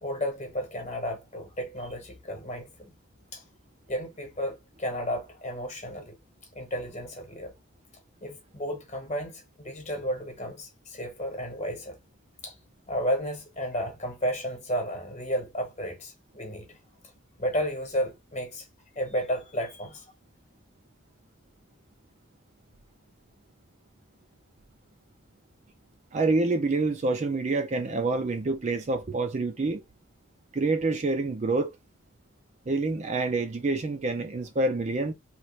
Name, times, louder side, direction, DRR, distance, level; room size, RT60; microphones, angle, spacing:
voice 1, 0.0-2.9 3.3-3.4 3.9-6.2 6.5-7.5 8.2-12.0 12.4-12.6 12.9-16.8 17.4-18.7 18.9-20.1, equal, 30° left, 1.1 m, -32 dB
voice 2, 26.1-29.8 30.5-31.7 32.7-35.1, right 3 dB, 30° right, 0.4 m, -27 dB
3.0 x 2.4 x 3.1 m
head